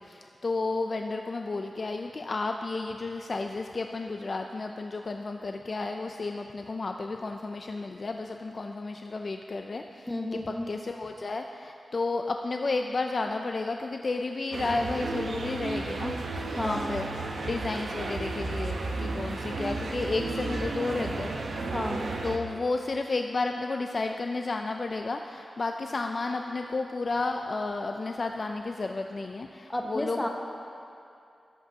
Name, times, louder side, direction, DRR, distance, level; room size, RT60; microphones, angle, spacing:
voice 1, 0.0-16.2 16.6-17.1 17.4-21.3 22.2-30.3, left 3 dB, 45° left, 4 dB, 0.3 m, -32 dB
voice 2, 10.1-10.7 16.6-16.9 21.7-22.1 29.7-30.3, left 1 dB, 15° left, 2 dB, 0.9 m, -31 dB
sound 1, 14.5-22.4, right 2 dB, 75° right, 0.8 m, -33 dB
16.0 x 8.1 x 2.8 m, 2.6 s
wide cardioid pair, 105°, 0 cm